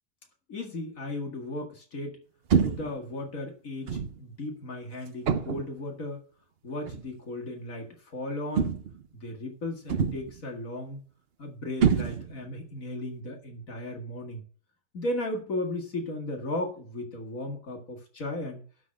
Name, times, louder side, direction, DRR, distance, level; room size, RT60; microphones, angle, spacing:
voice 1, 0.5-2.2 2.6-6.2 6.6-8.7 9.1-11.0 11.4-14.4 14.9-18.6, left 1 dB, 60° left, 2 dB, 2.4 m, -35 dB
sound 1, 2.5-3.0 3.9-4.2 5.3-5.8 6.9-7.1 8.6-9.1 9.9-10.4 11.8-12.5, right 7 dB, 50° right, 0.8 m, -26 dB
12.0 x 4.3 x 7.6 m, 0.42 s
omnidirectional pair, 1.6 m